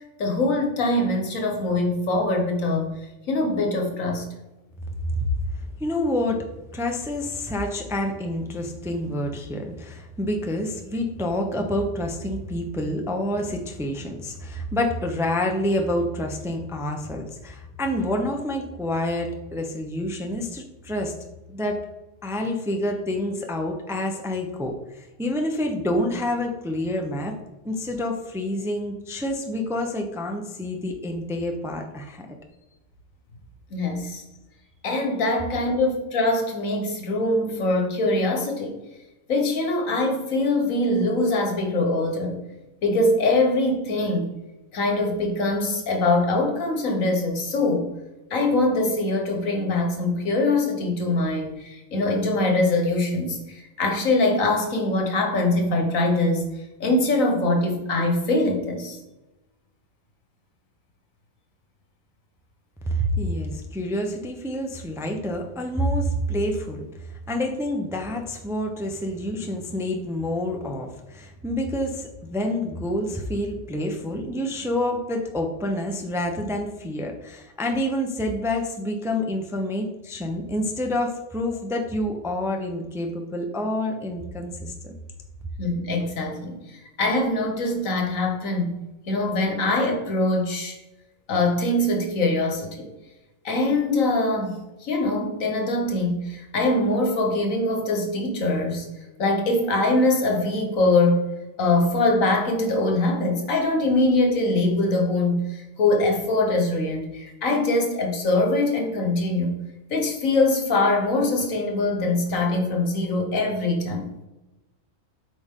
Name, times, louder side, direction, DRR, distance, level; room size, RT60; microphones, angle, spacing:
voice 1, 0.2-3.0 3.3-4.2 33.7-34.2 34.8-38.8 39.3-42.4 42.8-44.3 44.7-47.9 48.3-56.5 56.8-59.0 85.6-88.8 89.1-90.8 91.3-92.9 93.4-98.9 99.2-101.2 101.6-109.5 109.9-114.1, left 2 dB, 80° left, 2 dB, 1.7 m, -23 dB
voice 2, 5.5-6.5 6.7-21.1 21.5-21.8 22.2-27.3 27.6-32.3 62.9-84.9, left 1 dB, 5° right, 2 dB, 0.6 m, -28 dB
8.2 x 5.1 x 3.7 m, 1.0 s
omnidirectional pair, 1.4 m